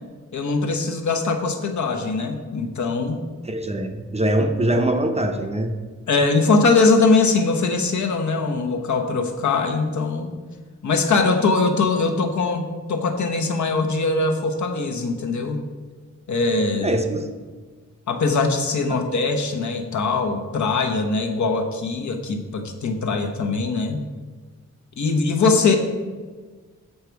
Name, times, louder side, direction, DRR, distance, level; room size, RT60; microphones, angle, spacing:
voice 1, 0.3-3.2 6.1-10.3 10.8-15.6 16.3-17.0 18.1-24.0 25.0-25.8, left 3 dB, 75° left, 4 dB, 1.0 m, -21 dB
voice 2, 3.4-5.7 16.8-17.3, right 1 dB, 20° right, 5 dB, 0.6 m, -22 dB
6.9 x 6.7 x 4.6 m, 1.4 s
wide cardioid pair, 160°, 30 cm